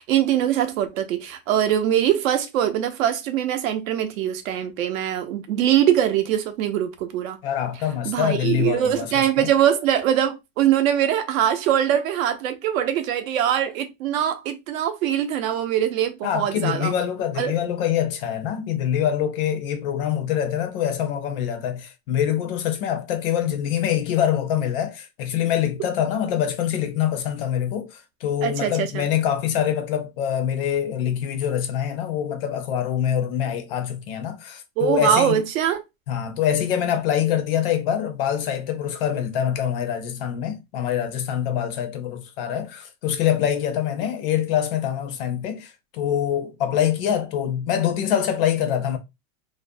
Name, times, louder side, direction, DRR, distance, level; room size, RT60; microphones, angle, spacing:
voice 1, 0.0-7.4 8.0-16.9 17.4-17.5 28.4-29.1 34.8-35.8, right 10 dB, 70° right, 0.6 m, -22 dB
voice 2, 7.4-9.5 16.2-35.4 36.1-49.0, left 9 dB, 45° left, 0.4 m, -25 dB
2.5 x 2.0 x 2.5 m
supercardioid pair, 165°, 43 cm